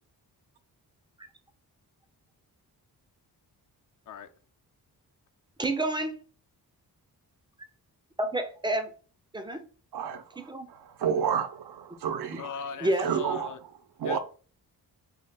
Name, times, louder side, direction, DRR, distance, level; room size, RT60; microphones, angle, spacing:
voice 1, 5.6-6.2 8.2-8.9 9.3-9.6 10.4-10.7 12.8-13.1, right 1 dB, 15° right, 0.4 m, -29 dB
voice 2, 9.9-12.5 13.0-13.5 14.0-14.2, right 7 dB, 85° right, 0.5 m, -30 dB
voice 3, 12.4-13.6 14.0-14.2, left 7 dB, 55° left, 0.5 m, -38 dB
3.5 x 2.2 x 3.2 m
wide cardioid pair, 135°, 38 cm